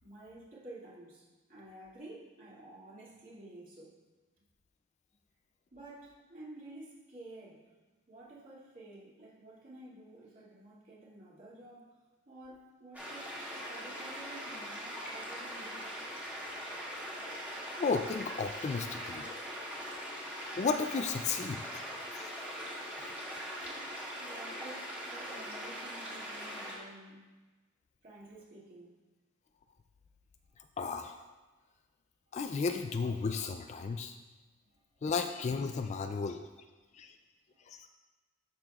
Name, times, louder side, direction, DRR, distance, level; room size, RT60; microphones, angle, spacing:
voice 1, 0.0-3.9 5.7-7.6 8.1-11.9 12.3-16.0 19.7-19.8 23.6-27.3 28.0-28.9 32.3-32.4 34.7-34.8 37.5-37.6, right 1 dB, 40° right, -7 dB, 2.3 m, -51 dB
sound 1, 12.9-26.8, equal, 5° right, 1.7 m, -41 dB
voice 2, 17.8-19.3 20.6-22.3 30.8-31.3 32.3-34.2 35.0-36.4 36.9-37.1 37.7-37.9, left 4 dB, 35° left, 7 dB, 0.3 m, -34 dB
12.0 x 6.0 x 2.4 m, 1.2 s
head